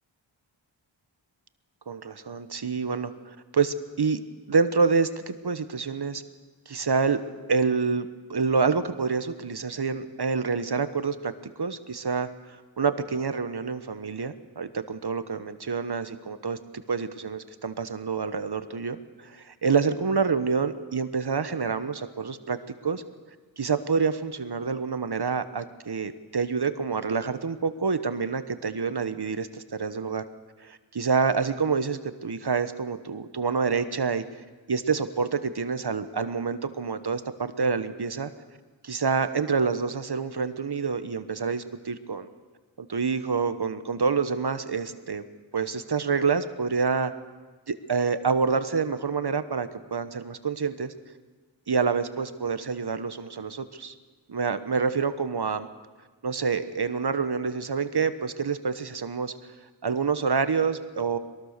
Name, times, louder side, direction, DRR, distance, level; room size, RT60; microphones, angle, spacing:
voice 1, 1.9-4.2 4.5-6.2 6.7-7.2 7.5-11.3 11.6-16.6 16.9-23.0 23.6-30.2 30.6-34.2 34.7-38.3 38.8-42.3 42.8-45.2 45.5-47.1 47.7-50.9 51.7-53.9 54.3-55.7 56.2-59.3 59.8-61.2, right 5 dB, 55° right, 11 dB, 1.2 m, -27 dB
22.0 x 19.5 x 6.7 m, 1.4 s
wide cardioid pair, 55°, 48 cm